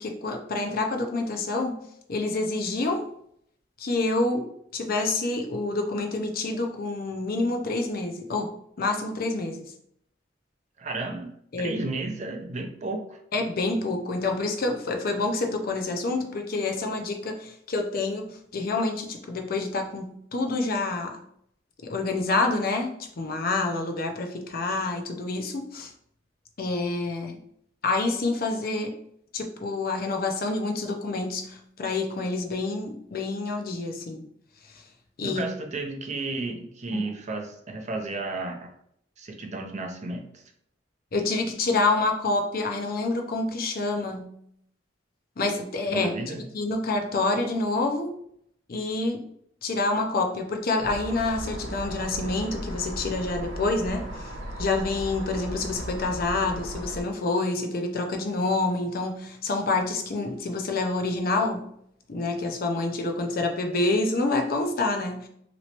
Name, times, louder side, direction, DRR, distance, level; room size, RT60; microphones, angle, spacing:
voice 1, 0.0-1.8 2.1-3.0 3.8-4.4 4.7-9.7 11.5-11.8 13.3-18.3 18.5-21.1 21.8-25.9 26.6-27.4 27.8-28.9 29.3-34.2 34.7-34.8 35.2-35.5 36.9-37.0 41.1-44.3 45.4-48.1 48.7-49.2 49.6-61.6 62.1-65.3, left 3 dB, 50° left, 3 dB, 0.5 m, -27 dB
voice 2, 10.8-11.3 11.6-13.2 35.2-38.7 39.2-40.4 45.9-46.4, right 3 dB, 40° right, 3 dB, 0.5 m, -33 dB
sound 1, 50.8-57.0, right 1 dB, 70° right, 0.8 m, -36 dB
3.0 x 3.0 x 2.8 m, 0.69 s
head